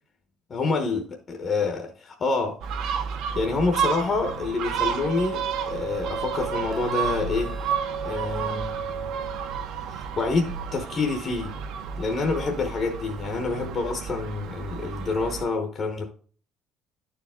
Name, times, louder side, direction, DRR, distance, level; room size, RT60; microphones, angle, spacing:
voice 1, 0.5-2.6 3.3-7.5 8.0-8.8 9.9-11.6 12.0-16.0, left 3 dB, 30° left, 0.9 m, -27 dB
Gull seagull, 2.6-15.4, right 7 dB, 65° right, 1.1 m, -32 dB
sound 1, 4.7-9.7, right 5 dB, 5° right, 0.8 m, -35 dB
11.0 x 4.7 x 3.6 m
cardioid pair, 175°, 0 cm